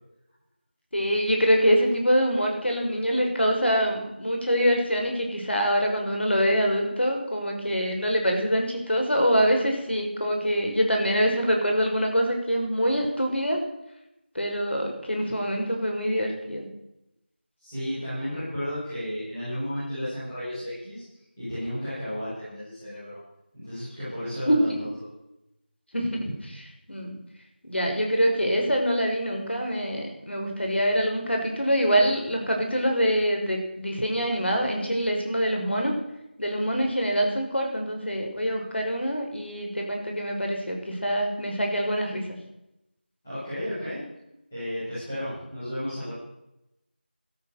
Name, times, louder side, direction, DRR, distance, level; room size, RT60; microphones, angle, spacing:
voice 1, 0.9-13.6 14.3-16.7 24.5-24.7 25.9-27.1 27.6-36.0 36.4-42.4, equal, 80° left, 2 dB, 6.1 m, -25 dB
voice 2, 17.6-21.0 21.4-23.2 23.5-24.9 43.2-44.0 44.5-46.1, equal, 5° left, -19 dB, 6.0 m, -33 dB
16.0 x 13.0 x 6.9 m, 0.88 s
figure-of-eight pair, 180°, 6 cm